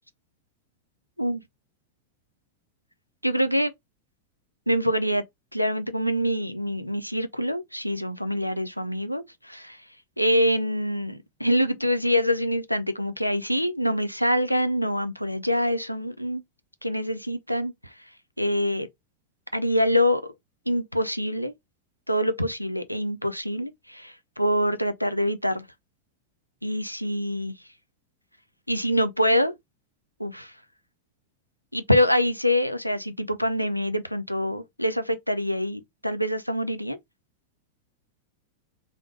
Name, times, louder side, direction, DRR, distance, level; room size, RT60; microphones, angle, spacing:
voice 1, 3.2-3.7 4.7-5.2 5.5-9.8 10.2-16.4 16.8-17.9 18.4-18.9 19.5-20.3 20.7-21.5 22.1-25.7 26.6-27.5 28.7-29.5 30.2-30.5 31.7-37.0, equal, 90° left, 0.7 m, -25 dB
3.6 x 3.6 x 3.7 m
figure-of-eight pair, 90°, 0 cm